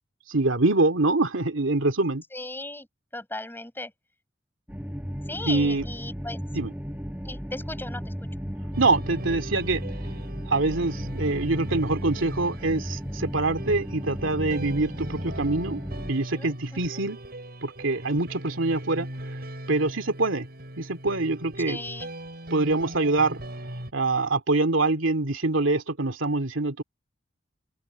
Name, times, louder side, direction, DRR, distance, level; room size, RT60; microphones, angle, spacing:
voice 1, 0.3-2.2 5.4-5.9 6.5-6.7 8.8-9.8 10.5-15.8 16.1-17.2 17.6-19.1 19.7-20.5 20.8-21.8 22.5-23.4 23.9-26.8, right 2 dB, 80° right, 2.6 m, -25 dB
voice 2, 2.3-2.9 3.1-3.9 5.3-6.4 7.2-8.3 16.3-17.1 21.7-22.1, left 2 dB, 10° left, 7.8 m, -37 dB
sound 1, 4.7-16.1, equal, 10° right, 5.2 m, -35 dB
sound 2, 8.7-23.9, right 1 dB, 55° right, 7.0 m, -40 dB
open air
head